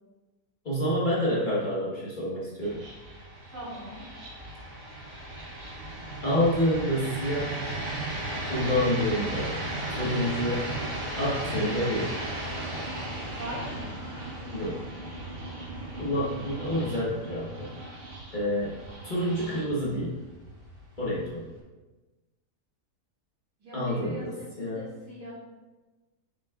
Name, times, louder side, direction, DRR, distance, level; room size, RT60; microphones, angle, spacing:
voice 1, 0.6-2.8 6.2-7.6 8.5-9.5 9.9-10.7 11.2-12.1 14.5-14.8 16.0-17.7 18.3-18.7 19.0-20.1 21.0-21.5 23.7-24.9, equal, 30° left, -7 dB, 1.4 m, -28 dB
sound 1, 2.6-21.6, right 1 dB, 50° right, 1.4 m, -36 dB
voice 2, 3.5-4.1 13.3-13.9 23.6-25.3, right 1 dB, 80° right, -7 dB, 2.8 m, -40 dB
7.0 x 6.1 x 2.5 m, 1.2 s
omnidirectional pair, 1.8 m